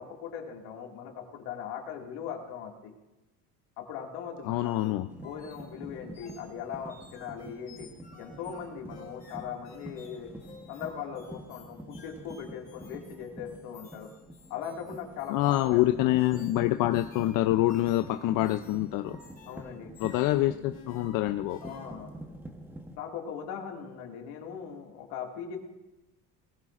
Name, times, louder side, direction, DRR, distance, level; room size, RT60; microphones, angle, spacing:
voice 1, 0.0-2.9 3.8-4.9 5.2-7.9 8.2-10.3 10.7-14.1 14.5-16.1 19.5-19.9 21.6-22.1 22.9-25.6, left 7 dB, 85° left, 1 dB, 2.2 m, -40 dB
voice 2, 4.4-5.1 15.3-19.2 20.0-21.6, left 15 dB, 65° left, 8 dB, 0.6 m, -26 dB
sound 1, 4.4-21.9, left 4 dB, 25° left, 3.3 m, -55 dB
sound 2, 5.1-23.0, right 1 dB, 5° right, 1.1 m, -47 dB
20.0 x 15.0 x 2.5 m, 1.0 s
cardioid pair, 145°, 36 cm